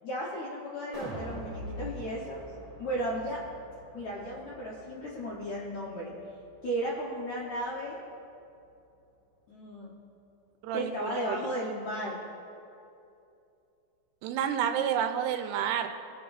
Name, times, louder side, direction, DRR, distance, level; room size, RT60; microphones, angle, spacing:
voice 1, 0.0-2.4 2.8-3.4 3.9-6.1 6.6-8.0 9.5-9.9 10.7-12.2, equal, 70° left, -5 dB, 1.8 m, -34 dB
sound 1, 0.9-7.1 7.5-7.6, equal, 55° right, 0.4 m, -45 dB
voice 2, 10.6-11.4 14.2-15.9, right 9 dB, 85° right, 7 dB, 2.6 m, -30 dB
20.5 x 8.6 x 2.6 m, 2.6 s
omnidirectional pair, 4.8 m